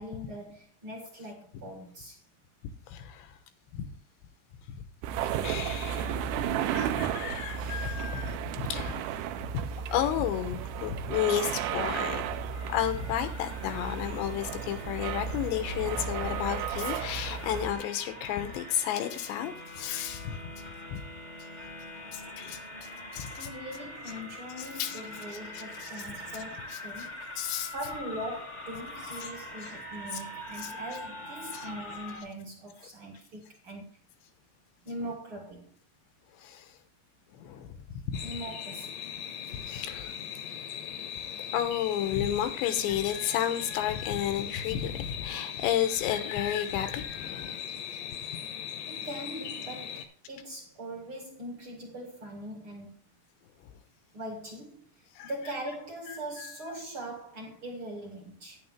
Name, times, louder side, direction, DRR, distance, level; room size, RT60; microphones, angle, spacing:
voice 1, 0.0-2.2 23.4-27.2 27.7-34.0 34.8-35.7 38.2-39.0 48.9-53.1 54.1-58.6, right 1 dB, 45° right, 1.9 m, -41 dB
voice 2, 2.9-3.4 3.7-3.9 4.7-4.8 5.4-6.2 6.7-9.0 9.5-12.2 12.7-20.4 20.9-21.0 22.1-22.6 23.1-23.3 24.6-25.0 25.5-25.9 27.4-27.7 29.2-29.3 30.1-30.2 30.6-30.7 31.5-31.7 36.4-36.8 37.3-38.2 39.6-40.1 41.5-47.6 53.6-53.7 55.2-55.3 56.1-56.5, left 10 dB, 85° left, 3.3 m, -32 dB
sound 1, 5.0-17.7, right 8 dB, 80° right, 2.9 m, -33 dB
sound 2, 12.5-32.2, left 1 dB, 20° left, 1.2 m, -43 dB
sound 3, 38.1-50.0, left 9 dB, 70° left, 2.0 m, -39 dB
10.5 x 9.9 x 3.7 m
omnidirectional pair, 5.0 m